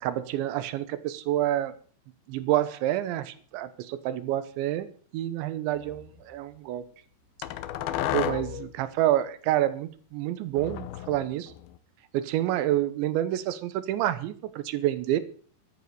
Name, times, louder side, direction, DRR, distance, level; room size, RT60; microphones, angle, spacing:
voice 1, 0.0-1.7 2.3-4.9 5.1-6.8 8.1-11.5 12.1-15.2, right 13 dB, 85° right, 14 dB, 3.2 m, -28 dB
sound 1, 5.8-6.1 7.4-8.7 10.6-11.8, left 12 dB, 75° left, 2.2 m, -32 dB
14.0 x 11.0 x 6.7 m, 0.43 s
omnidirectional pair, 5.3 m